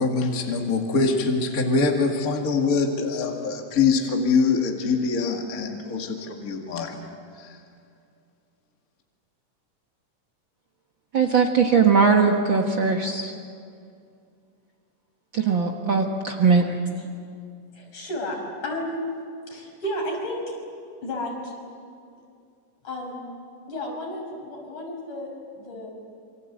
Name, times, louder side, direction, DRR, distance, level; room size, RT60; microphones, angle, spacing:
voice 1, 0.0-7.0 7.4-7.6, left 4 dB, 30° left, 2 dB, 2.1 m, -24 dB
voice 2, 11.1-13.3 15.3-16.7, right 5 dB, 45° right, 2 dB, 1.8 m, -20 dB
voice 3, 17.7-19.0 19.5-20.5 21.0-21.5 22.8-23.3 23.7-25.3 25.6-25.9, left 1 dB, 65° left, 0 dB, 7.2 m, -32 dB
27.5 x 25.0 x 8.2 m, 2.4 s
omnidirectional pair, 3.6 m